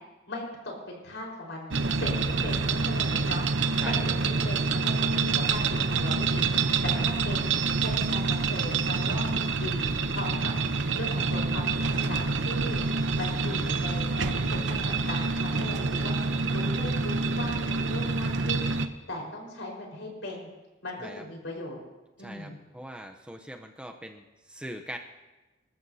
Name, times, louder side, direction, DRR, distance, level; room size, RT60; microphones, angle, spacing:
voice 1, 0.3-3.4 3.8-9.3 9.6-10.5 10.9-12.8 13.1-16.1 16.5-20.5 20.8-21.8 22.2-22.6, left 1 dB, 85° left, -1 dB, 4.6 m, -38 dB
sound 1, 1.7-18.9, right 4 dB, 75° right, 0.8 m, -27 dB
voice 2, 22.2-25.0, right 1 dB, 5° right, 3 dB, 0.7 m, -41 dB
25.5 x 13.5 x 2.8 m, 1.1 s
head